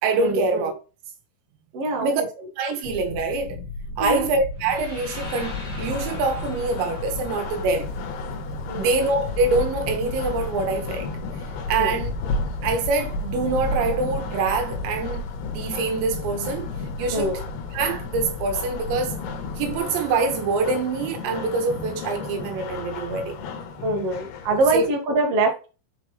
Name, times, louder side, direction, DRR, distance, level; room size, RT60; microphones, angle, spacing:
voice 1, 0.0-0.7 2.0-2.2 2.6-3.6 4.0-7.9 8.7-11.1 11.7-12.1 12.6-15.2 15.5-16.7 17.0-17.3 17.7-19.2 19.6-23.5 24.7-24.8, right 3 dB, 80° right, 3.2 m, -25 dB
voice 2, 1.7-2.3 4.0-4.3 8.7-8.9 11.8-12.0 17.1-17.4 23.8-25.7, right 2 dB, 55° right, 1.7 m, -24 dB
sound 1, 2.8-19.8, left 3 dB, 45° left, 2.1 m, -36 dB
sound 2, 4.5-8.6, left 1 dB, 25° left, 1.4 m, -43 dB
Salvador drumming, 5.1-24.9, left 3 dB, 70° left, 2.9 m, -33 dB
6.3 x 5.6 x 3.3 m
omnidirectional pair, 5.2 m